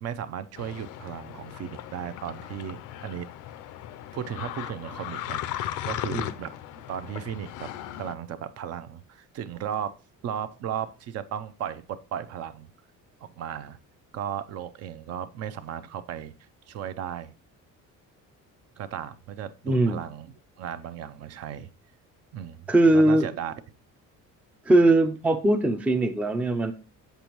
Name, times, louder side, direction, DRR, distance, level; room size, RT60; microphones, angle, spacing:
voice 1, 0.0-3.3 4.1-9.9 10.2-12.7 13.2-13.8 14.1-16.3 16.7-17.3 18.8-21.7 22.3-22.7 22.9-23.5, right 9 dB, 50° right, 12 dB, 0.6 m, -36 dB
sound 1, 0.6-8.1, left 12 dB, 75° left, 0.6 m, -37 dB
voice 2, 19.7-20.0 22.7-23.3 24.7-26.7, right 2 dB, 5° right, 6 dB, 0.4 m, -20 dB
7.9 x 6.8 x 3.0 m, 0.34 s
cardioid pair, 175°, 32 cm